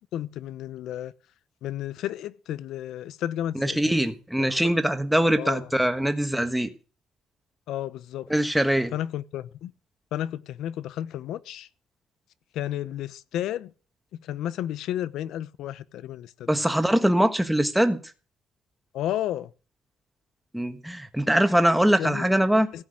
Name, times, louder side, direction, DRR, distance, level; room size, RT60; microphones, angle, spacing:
voice 1, 0.1-1.1 1.6-3.9 4.4-4.6 5.4-5.7 7.7-8.3 8.9-9.7 10.1-11.7 12.5-13.7 14.2-16.5 18.9-19.5 22.0-22.3 22.7-22.8, left 12 dB, 70° left, 0.8 m, -32 dB
voice 2, 3.5-6.7 8.3-8.9 16.5-18.0 20.5-22.7, right 1 dB, ahead, 1.4 m, -22 dB
16.0 x 6.0 x 9.0 m
cardioid pair, 170°, 0 cm